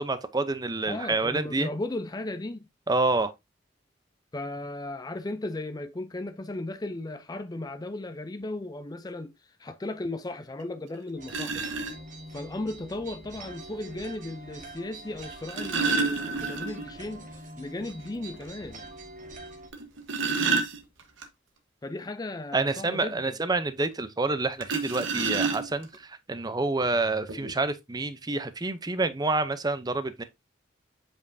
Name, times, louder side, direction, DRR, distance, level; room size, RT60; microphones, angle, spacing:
voice 1, 0.0-1.7 2.9-3.3 22.5-30.2, right 3 dB, 20° right, 0.6 m, -28 dB
voice 2, 0.9-2.6 4.3-11.7 12.3-18.9 21.8-23.3, left 2 dB, 20° left, 0.5 m, -36 dB
sound 1, 10.6-10.7 11.3-11.9 13.3-13.4 15.2-17.0 17.3-17.4 17.8-17.9 18.4-18.5 19.7-21.2 24.6-26.0 26.8-26.9 27.3-27.5, right 4 dB, 90° right, 1.2 m, -29 dB
sound 2, 11.2-19.7, right 2 dB, 40° right, 1.6 m, -45 dB
7.5 x 5.3 x 2.6 m
head